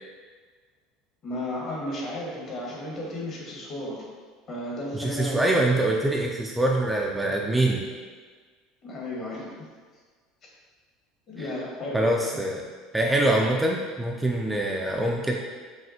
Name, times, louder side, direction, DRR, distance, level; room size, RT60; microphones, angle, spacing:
voice 1, 1.2-4.0 4.5-5.7 8.8-9.7 11.3-12.4, left 1 dB, 45° left, -4 dB, 1.4 m, -34 dB
voice 2, 4.9-7.8 11.4-11.5 11.9-12.6 12.9-15.4, right 1 dB, 10° right, -1 dB, 0.4 m, -24 dB
5.7 x 2.4 x 2.8 m, 1.5 s
figure-of-eight pair, 70°, 0 cm